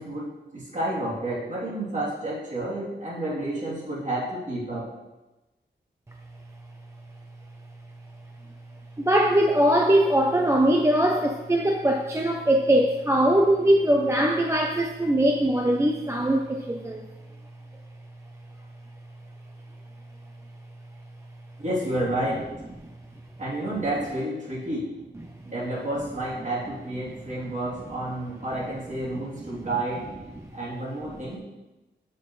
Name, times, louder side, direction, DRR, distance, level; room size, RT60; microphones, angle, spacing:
voice 1, 0.0-4.9 21.6-22.5 23.4-25.0 25.4-30.1 30.5-31.4, right 1 dB, 40° right, -7 dB, 3.1 m, -30 dB
voice 2, 9.0-17.1, right 1 dB, 15° right, 2 dB, 0.5 m, -21 dB
13.0 x 5.5 x 3.2 m, 1.1 s
wide cardioid pair, 150°, 19 cm